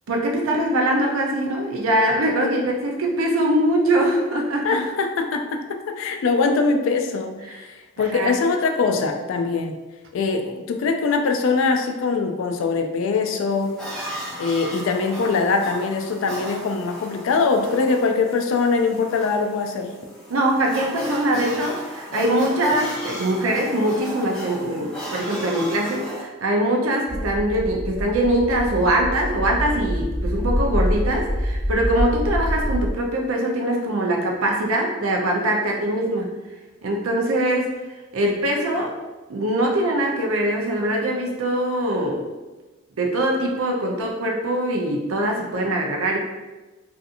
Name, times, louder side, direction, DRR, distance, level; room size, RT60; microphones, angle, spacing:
voice 1, 0.1-4.8 7.5-7.6 8.1-8.4 20.3-36.3 36.8-37.7 38.1-38.9 39.3-42.3 43.0-46.2, right 1 dB, 80° right, 0 dB, 0.5 m, -22 dB
voice 2, 4.6-9.8 10.1-13.7 14.4-19.9, left 4 dB, 70° left, 5 dB, 0.3 m, -22 dB
sound 1, 13.5-26.2, equal, 5° left, 0.5 m, -36 dB
sound 2, 27.1-32.9, equal, 20° left, 0.9 m, -25 dB
2.7 x 2.4 x 2.4 m, 1.2 s
head